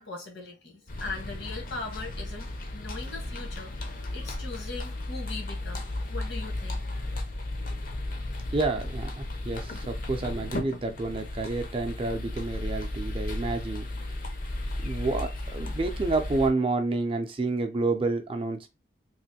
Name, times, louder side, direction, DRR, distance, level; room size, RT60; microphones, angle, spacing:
voice 1, 0.0-5.8 6.1-7.2 10.0-10.4, left 3 dB, 80° left, 1.2 m, -40 dB
sound 1, 0.9-16.5, left 1 dB, 45° left, 0.6 m, -34 dB
voice 2, 8.5-13.9 14.8-18.7, right 3 dB, 30° right, 0.4 m, -29 dB
3.0 x 2.5 x 2.7 m
head